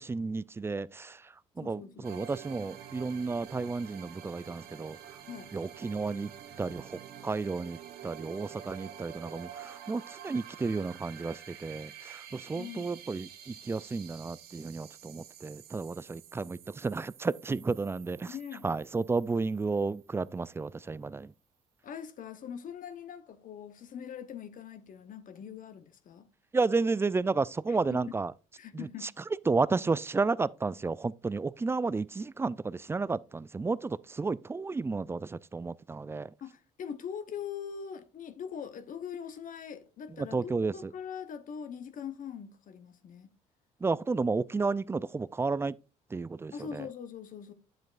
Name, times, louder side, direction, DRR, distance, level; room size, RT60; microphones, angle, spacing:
voice 1, 0.0-5.0 5.5-6.3 6.6-7.8 8.0-18.3 18.6-21.3 26.5-28.3 28.7-29.1 29.5-36.3 40.2-40.9 43.8-45.8 46.1-46.9, right 4 dB, 15° right, 0.3 m, -32 dB
voice 2, 1.6-2.2 5.3-5.5 12.5-12.9 18.3-18.7 21.8-26.3 27.7-28.1 28.6-29.1 36.4-43.3 46.5-47.5, left 7 dB, 55° left, 0.9 m, -42 dB
sound 1, 2.0-20.5, right 9 dB, 65° right, 0.9 m, -49 dB
9.2 x 7.5 x 2.5 m
hypercardioid pair, 60°, 17 cm